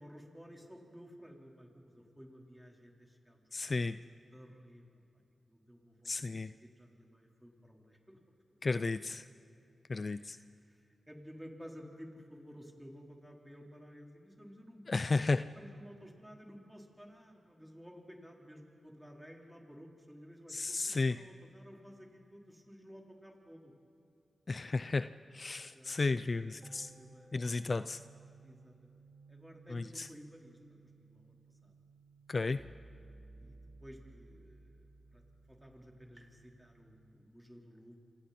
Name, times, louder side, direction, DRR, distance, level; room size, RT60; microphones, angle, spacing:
voice 1, 0.0-4.0 4.3-5.0 5.5-8.8 10.1-15.2 15.6-23.7 25.7-26.7 27.0-27.4 28.4-30.6 31.1-31.7 33.4-35.2 35.5-38.0, equal, 5° right, -1 dB, 4.1 m, -54 dB
voice 2, 3.5-4.0 6.1-6.5 8.6-9.2 9.9-10.4 14.9-15.4 20.5-21.2 24.5-26.9 27.3-28.0 29.7-30.1 32.3-32.6, left 3 dB, 45° left, 13 dB, 0.5 m, -33 dB
sound 1, 26.6-37.1, right 3 dB, 25° right, 4.4 m, -58 dB
27.5 x 27.0 x 4.3 m, 2.6 s
cardioid pair, 55°, 0 cm